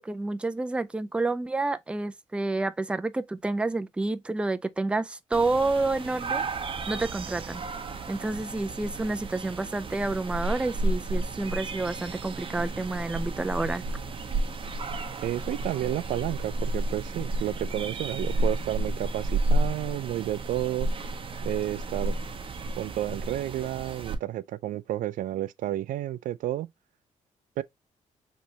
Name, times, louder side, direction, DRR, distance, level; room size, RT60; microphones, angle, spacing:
voice 1, 0.0-6.4 6.9-7.6 8.1-13.8, right 2 dB, 10° right, 0.4 m, -29 dB
sound 1, 5.3-24.1, right 2 dB, 40° right, 1.0 m, -32 dB
voice 2, 15.2-20.9 21.4-22.1 22.8-26.7 27.6-27.7, right 13 dB, 80° right, 0.4 m, -31 dB
4.4 x 3.2 x 2.7 m
cardioid pair, 100°, 14 cm